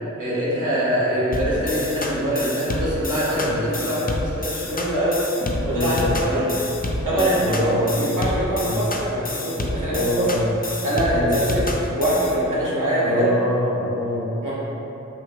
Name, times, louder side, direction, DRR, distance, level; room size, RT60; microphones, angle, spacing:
voice 1, 0.2-3.5 3.7-5.2 5.7-6.5 7.0-10.3 10.8-13.3 14.4-14.5, equal, 80° right, -11 dB, 1.5 m, -23 dB
sound 1, 1.3-12.4, left 2 dB, 30° left, 0.4 m, -29 dB
sound 2, 1.5-1.8 2.2-2.5 2.9-3.2 3.7-4.0 5.4-5.8 6.3-6.6 7.1-7.4 8.0-8.3, right 1 dB, 65° right, 1.2 m, -35 dB
voice 2, 5.6-6.2 7.4-7.9 8.6-8.8 9.9-10.5 11.1-11.5 13.0-14.3, left 1 dB, 70° left, -5 dB, 0.9 m, -25 dB
5.6 x 2.6 x 3.0 m, 3.0 s
wide cardioid pair, 45°, 31 cm